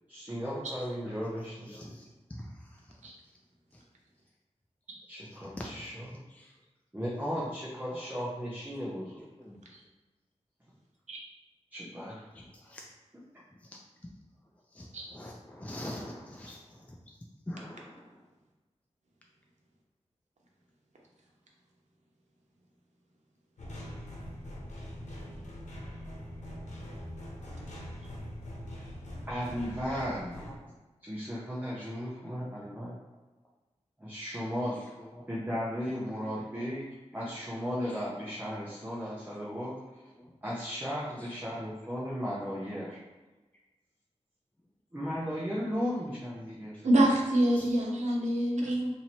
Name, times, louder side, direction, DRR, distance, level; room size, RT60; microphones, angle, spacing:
voice 1, 0.1-1.9 5.1-6.2 6.9-9.2 11.7-12.2 29.3-30.4 31.0-32.9 34.0-34.8 35.3-36.9 37.1-39.8 40.4-43.0 44.9-46.7, equal, 15° right, -7 dB, 0.8 m, -35 dB
voice 2, 15.1-16.6 17.5-17.9 29.9-30.0 30.4-30.5 35.0-35.2 36.3-36.5 41.5-41.6 45.6-45.7 47.5-47.6, left 1 dB, 10° left, -1 dB, 0.4 m, -42 dB
sound 1, 23.6-30.6, equal, 85° left, 0.9 m, -42 dB
voice 3, 46.8-48.9, right 1 dB, 85° right, -2 dB, 0.8 m, -26 dB
2.9 x 2.8 x 4.3 m, 1.2 s
wide cardioid pair, 100°, 12 cm